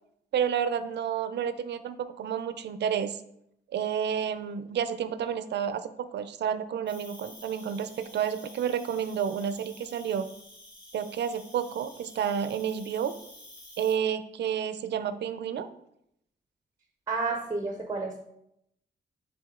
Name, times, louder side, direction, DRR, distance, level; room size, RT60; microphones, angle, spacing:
voice 1, 0.3-3.2 3.7-10.3 10.9-13.1 13.8-15.7, right 8 dB, 70° right, 11 dB, 0.5 m, -30 dB
Cricket, 6.9-13.9, left 1 dB, 25° left, 2.9 m, -50 dB
voice 2, 17.1-18.2, right 3 dB, 20° right, 4 dB, 0.6 m, -31 dB
9.9 x 3.6 x 3.7 m, 0.77 s
wide cardioid pair, 170°, 18 cm